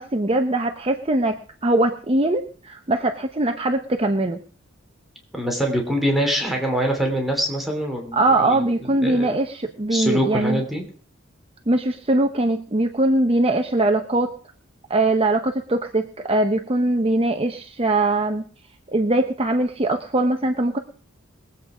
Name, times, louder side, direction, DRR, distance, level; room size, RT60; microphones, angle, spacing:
voice 1, 0.0-4.4 8.1-10.6 11.7-14.3 14.9-18.4 18.9-20.8, right 2 dB, 30° right, 5 dB, 0.9 m, -21 dB
voice 2, 5.3-9.4 9.9-10.8, equal, ahead, 0 dB, 2.9 m, -24 dB
21.5 x 8.3 x 5.0 m, 0.43 s
head